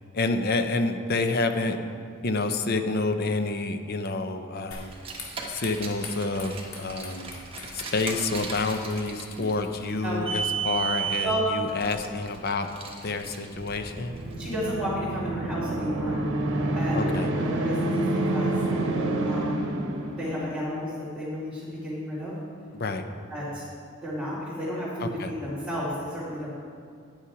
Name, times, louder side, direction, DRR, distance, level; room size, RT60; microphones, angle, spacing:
voice 1, 0.1-1.8 2.2-4.9 5.5-7.3 7.7-12.7 13.0-14.1 16.9-17.3 22.7-23.0 25.0-25.3, left 3 dB, 50° left, 7 dB, 0.7 m, -28 dB
sound 1, 4.7-11.3, left 3 dB, 85° left, 2.0 m, -46 dB
Car, 4.8-14.4, right 6 dB, 25° right, 1.3 m, -35 dB
sound 2, 13.6-20.6, right 1 dB, 60° right, 1.1 m, -28 dB
voice 2, 14.4-16.2 16.7-17.1 17.4-18.5 19.3-19.6 20.2-22.3 23.3-23.6 24.0-26.5, equal, 5° left, -14 dB, 2.5 m, -32 dB
10.5 x 8.5 x 4.9 m, 2.2 s
head